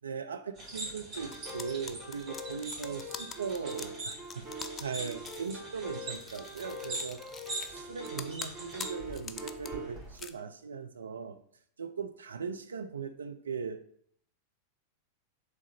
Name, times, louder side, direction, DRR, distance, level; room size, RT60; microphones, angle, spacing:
voice 1, 0.0-4.5 4.8-7.2 7.7-11.4 11.8-13.8, right 6 dB, 70° right, 8 dB, 0.3 m, -39 dB
sound 1, 0.6-10.2, right 2 dB, 40° right, 1.6 m, -43 dB
sound 2, 1.2-9.9, equal, 10° right, 1.7 m, -44 dB
sound 3, 1.3-5.5 6.1-7.8 8.1-9.7 10.1-10.3, left 6 dB, 20° left, 0.3 m, -44 dB
3.6 x 3.3 x 4.2 m, 0.62 s
figure-of-eight pair, 90°, 0 cm